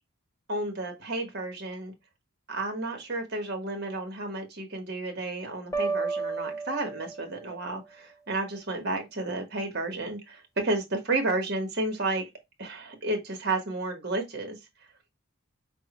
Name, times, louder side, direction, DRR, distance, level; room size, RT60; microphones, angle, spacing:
voice 1, 0.5-1.9 2.5-12.2 12.6-14.6, right 2 dB, 50° right, 1.2 m, -32 dB
sound 1, 5.7-7.6, right 4 dB, 15° left, 0.5 m, -32 dB
5.4 x 2.2 x 2.9 m
head